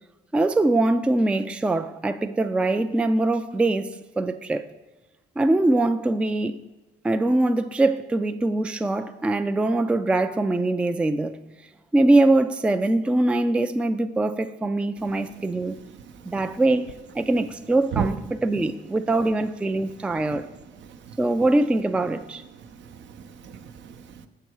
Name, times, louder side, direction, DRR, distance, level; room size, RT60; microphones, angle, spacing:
voice 1, 0.3-4.7 5.4-6.6 7.0-11.4 11.9-15.8 16.3-20.5 21.2-22.4, right 2 dB, 5° right, 0.3 m, -23 dB
voice 2, 20.9-21.2 22.8-24.3, right 7 dB, 70° right, 0.6 m, -34 dB
6.9 x 6.7 x 4.7 m
cardioid pair, 90°, 20 cm